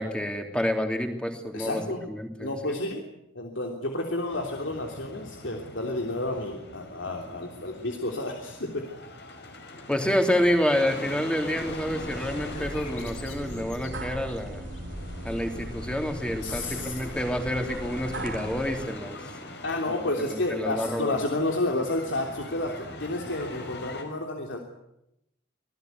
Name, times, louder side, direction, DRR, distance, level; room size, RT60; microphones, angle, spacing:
voice 1, 0.0-1.8 2.1-2.5 9.9-14.7 15.2-19.2 20.2-21.2, equal, 5° left, 4 dB, 3.1 m, -28 dB
voice 2, 1.5-2.0 2.4-3.0 3.3-8.9 16.4-16.9 19.6-24.6, left 2 dB, 85° left, 2 dB, 3.3 m, -30 dB
sound 1, 4.3-24.0, left 1 dB, 60° left, 5.2 m, -42 dB
sound 2, 11.5-18.8, right 1 dB, 80° right, 2.9 m, -39 dB
sound 3, 12.3-15.0, left 7 dB, 40° left, 7.7 m, -48 dB
26.5 x 19.0 x 9.5 m, 0.85 s
head